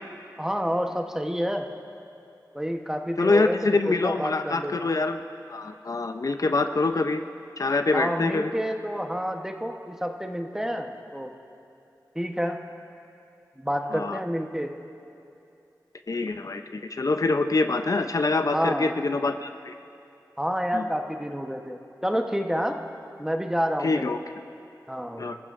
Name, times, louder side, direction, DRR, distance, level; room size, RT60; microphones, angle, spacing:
voice 1, 0.4-1.7 2.5-4.7 7.9-11.3 12.1-12.6 13.6-14.7 18.5-18.9 20.4-22.8 23.2-24.1 24.9-25.3, equal, 5° right, 4 dB, 0.9 m, -29 dB
voice 2, 3.2-5.2 5.5-7.2 7.6-8.5 13.9-14.2 16.1-19.7 20.7-20.8 23.8-24.2 25.2-25.4, left 3 dB, 55° left, 7 dB, 0.5 m, -25 dB
25.5 x 14.5 x 2.5 m, 2.7 s
wide cardioid pair, 65°, 7 cm